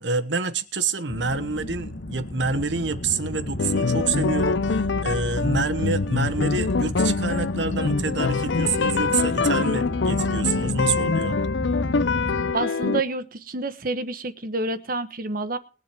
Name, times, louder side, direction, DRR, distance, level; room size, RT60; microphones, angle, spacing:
voice 1, 0.0-11.4, right 4 dB, 70° right, 1.2 m, -27 dB
sound 1, 1.1-12.5, left 1 dB, 90° left, 1.6 m, -31 dB
sound 2, 3.6-13.0, left 4 dB, 70° left, 0.6 m, -24 dB
voice 2, 12.5-15.6, right 2 dB, 50° right, 1.1 m, -28 dB
20.5 x 7.6 x 4.6 m
head